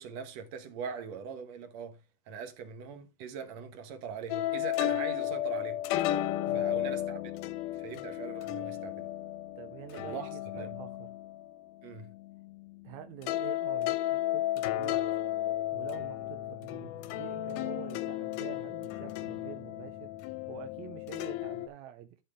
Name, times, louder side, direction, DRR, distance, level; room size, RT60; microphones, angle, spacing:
voice 1, 0.0-2.0 2.3-5.8 6.5-7.2 7.7-9.1 10.0-10.8 11.8-12.1, right 6 dB, 60° right, 2.2 m, -41 dB
sound 1, 4.3-12.9 13.2-21.7, left 13 dB, 80° left, 2.1 m, -34 dB
voice 2, 9.6-11.1 12.8-15.0 15.7-20.1 20.5-22.2, right 11 dB, 75° right, 1.7 m, -47 dB
12.5 x 4.8 x 3.6 m
omnidirectional pair, 4.0 m